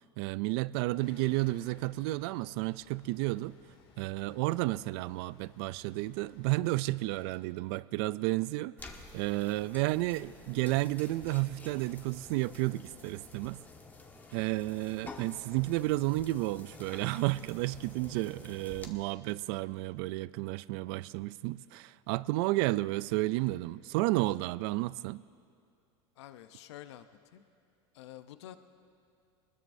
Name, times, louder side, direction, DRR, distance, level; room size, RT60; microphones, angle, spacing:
voice 1, 0.2-3.6 4.0-8.7 9.1-13.6 14.3-25.2, right 19 dB, 65° right, 0.4 m, -32 dB
sound 1, 1.0-7.4, left 4 dB, 45° left, 2.4 m, -60 dB
sound 2, 8.8-18.9, left 3 dB, 10° left, 1.2 m, -50 dB
voice 2, 26.2-27.4 27.9-28.6, left 12 dB, 85° left, 0.7 m, -49 dB
21.5 x 20.0 x 2.7 m
supercardioid pair, 130°, 14 cm